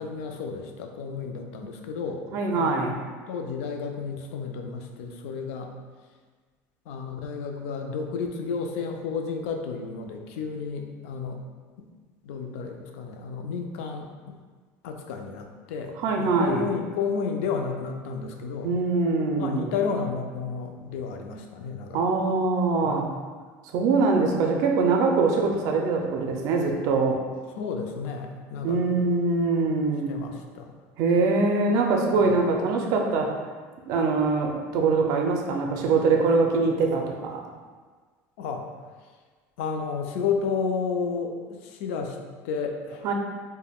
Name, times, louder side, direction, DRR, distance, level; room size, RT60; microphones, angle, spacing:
voice 1, 0.0-2.3 2.5-3.0 3.3-5.7 6.9-11.4 11.8-11.9 12.2-14.4 14.8-18.7 19.4-22.2 22.8-23.1 27.6-29.1 30.1-30.7 32.1-32.4 38.4-38.7 39.6-42.2 42.4-43.1, left 5 dB, 90° left, 3 dB, 0.3 m, -32 dB
voice 2, 2.3-2.9 16.0-16.7 18.6-19.7 21.9-23.1 23.7-27.2 28.6-30.1 31.0-33.3 33.9-37.4 43.0-43.1, right 4 dB, 55° right, 2 dB, 0.4 m, -23 dB
3.4 x 2.1 x 2.3 m, 1.5 s
cardioid pair, 150°, 7 cm